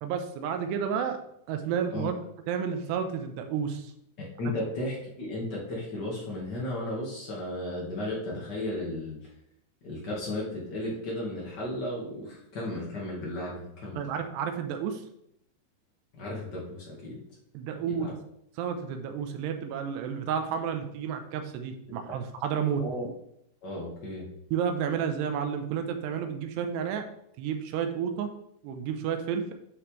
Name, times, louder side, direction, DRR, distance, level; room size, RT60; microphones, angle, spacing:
voice 1, 0.0-1.2 1.5-2.2 2.5-3.9 4.5-4.6 14.0-15.0 17.5-18.1 18.6-22.8 24.5-27.1 27.4-28.3 28.6-29.5, right 7 dB, 90° right, 6 dB, 2.9 m, -31 dB
voice 2, 4.2-9.2 9.8-14.0 16.1-17.2 17.9-18.1 22.8-23.1 23.6-24.2, left 1 dB, 70° left, -4 dB, 0.9 m, -34 dB
9.3 x 6.0 x 3.2 m, 0.76 s
omnidirectional pair, 4.8 m